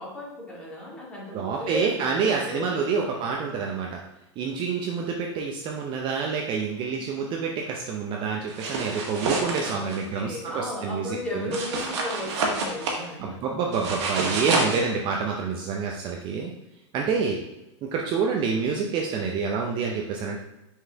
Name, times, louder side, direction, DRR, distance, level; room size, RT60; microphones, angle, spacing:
voice 1, 0.0-3.2 9.7-13.4 14.1-14.6, left 1 dB, 5° left, -5 dB, 2.1 m, -35 dB
voice 2, 1.3-4.0 4.4-11.5 13.2-16.5 16.9-17.4 17.8-20.4, right 5 dB, 30° right, 0 dB, 0.7 m, -28 dB
sound 1, 8.5-10.0 11.5-13.0 13.7-14.8, right 3 dB, 70° right, 1.6 m, -28 dB
6.3 x 4.8 x 3.4 m, 0.95 s
supercardioid pair, 140°, 15 cm